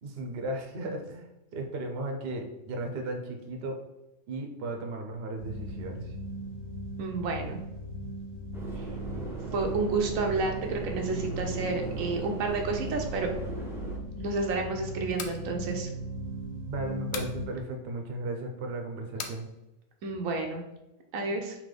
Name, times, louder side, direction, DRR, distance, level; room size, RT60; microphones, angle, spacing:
voice 1, 0.0-3.8 4.3-6.2 16.5-19.5, right 2 dB, 55° right, 3 dB, 0.8 m, -35 dB
sound 1, 5.4-17.5, right 2 dB, 40° left, 0.9 m, -38 dB
voice 2, 7.0-7.6 8.8-8.9 9.5-13.3 14.2-15.9 20.0-20.6 21.1-21.6, right 3 dB, 80° right, 3 dB, 1.0 m, -30 dB
Subway metro underground, 8.5-14.0, right 2 dB, 5° right, 0.5 m, -40 dB
sound 2, 15.0-15.4 17.1-17.4 19.2-19.4, left 6 dB, 65° left, 0.7 m, -37 dB
3.8 x 2.9 x 3.3 m, 0.95 s
omnidirectional pair, 1.4 m